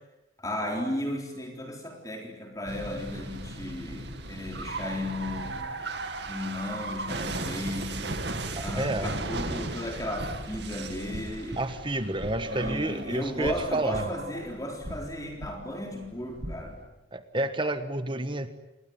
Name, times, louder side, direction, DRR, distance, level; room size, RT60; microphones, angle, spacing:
voice 1, 0.4-5.7 6.3-8.2 8.6-11.6 12.4-16.8, left 1 dB, 20° left, 2 dB, 4.0 m, -35 dB
sound 1, 2.7-16.9, right 2 dB, 60° right, 2.5 m, -37 dB
voice 2, 8.5-9.1 11.6-14.0 17.1-18.5, right 2 dB, 25° right, 10 dB, 1.4 m, -30 dB
29.0 x 21.5 x 9.5 m, 0.97 s
head